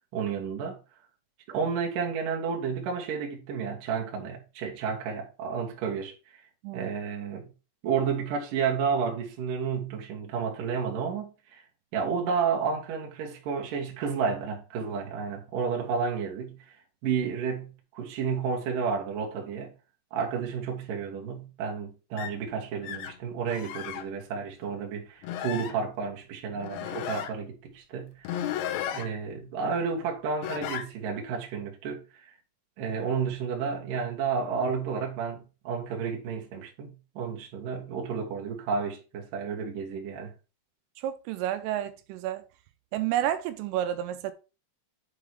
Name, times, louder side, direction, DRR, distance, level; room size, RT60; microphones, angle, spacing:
voice 1, 0.1-0.8 1.5-6.2 6.7-7.5 7.8-11.3 11.9-16.6 17.0-19.7 20.1-28.4 28.9-32.0 32.8-40.3, right 6 dB, 60° right, 2.6 m, -31 dB
sound 1, 22.2-22.4 22.8-23.2 23.5-24.0 24.7-24.8 25.2-25.8 26.6-27.3 28.2-29.1 30.4-30.9, left 10 dB, 80° left, 2.9 m, -34 dB
voice 2, 41.0-42.4 42.9-44.3, right 12 dB, 85° right, 3.2 m, -30 dB
8.2 x 4.0 x 4.6 m
omnidirectional pair, 5.7 m